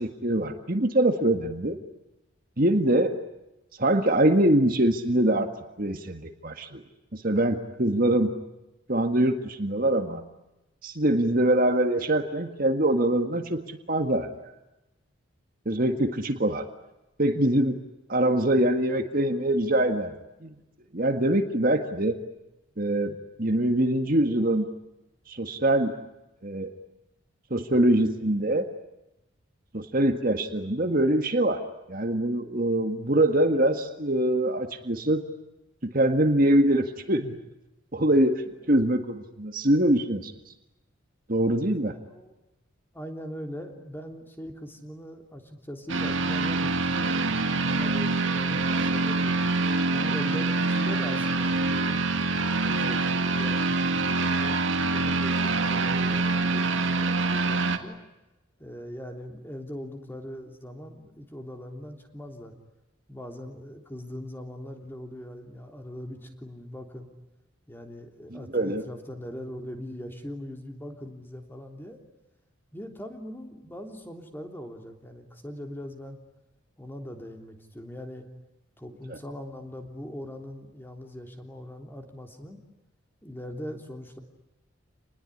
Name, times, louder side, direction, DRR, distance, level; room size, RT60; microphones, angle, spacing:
voice 1, 0.0-1.8 2.6-3.1 3.8-5.5 5.8-6.8 7.1-8.3 8.9-10.2 10.8-14.3 15.6-16.6 17.2-17.8 18.1-20.1 20.4-20.5 20.9-22.2 22.8-24.7 25.3-25.9 26.4-26.7 27.5-28.7 29.7-31.6 31.9-35.2 35.8-37.4 37.9-38.4 38.7-40.3 41.3-41.9 68.3-68.8 79.1-79.2, right 1 dB, 45° right, 6 dB, 1.8 m, -24 dB
voice 2, 38.4-38.7 41.4-42.3 42.9-47.1 47.6-49.5 49.9-52.0 52.5-53.8 54.2-58.0 58.6-62.5 63.1-67.1 67.7-72.0 72.7-76.2 76.8-78.3 78.8-82.6 83.2-84.2, equal, 10° left, 3 dB, 3.3 m, -41 dB
sound 1, 45.9-57.8, right 3 dB, 70° right, 2.3 m, -25 dB
28.5 x 20.5 x 10.0 m, 0.97 s
head